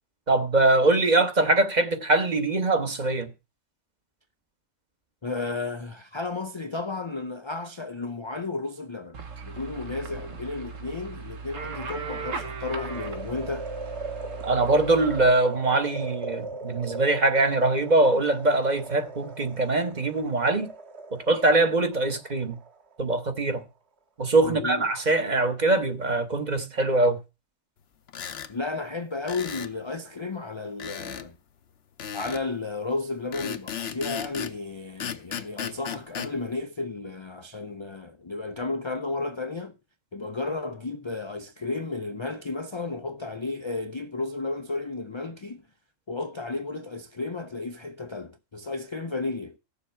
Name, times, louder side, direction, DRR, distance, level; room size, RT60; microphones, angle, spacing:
voice 1, 0.3-3.3 14.4-20.7 21.3-22.6 23.0-23.6 24.2-27.2, right 2 dB, 35° right, 1.2 m, -23 dB
voice 2, 5.2-9.2 9.4-13.7 24.4-24.9 28.5-31.4 32.1-39.7 40.1-45.6 46.1-49.6, left 3 dB, 40° left, 0.4 m, -33 dB
sound 1, 9.1-15.3, right 5 dB, 75° right, 1.5 m, -38 dB
sound 2, 12.9-23.2 23.6-23.7, right 2 dB, 55° right, 1.9 m, -39 dB
sound 3, 28.1-28.5 29.3-29.7 30.8-31.3 32.0-32.5 33.3-34.6 35.0-36.3, left 8 dB, 55° left, 1.0 m, -35 dB
16.0 x 7.1 x 4.4 m
omnidirectional pair, 1.4 m